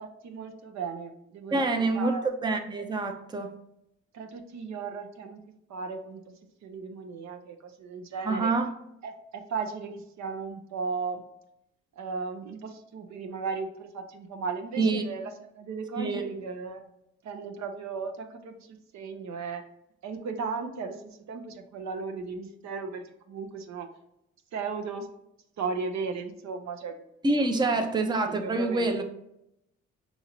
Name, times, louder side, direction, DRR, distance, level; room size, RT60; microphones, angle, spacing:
voice 1, 0.0-2.2 4.1-5.4 5.7-6.3 6.6-8.5 9.0-11.2 12.0-16.9 17.2-19.6 20.0-23.9 24.5-25.1 25.6-27.0 28.2-28.9, right 4 dB, 60° right, 5 dB, 0.6 m, -36 dB
voice 2, 1.5-3.6 8.2-8.7 14.8-15.0 16.0-16.2 27.2-29.0, right 3 dB, 15° right, 5 dB, 0.5 m, -26 dB
5.5 x 2.8 x 2.9 m, 0.82 s
supercardioid pair, 55°, 31 cm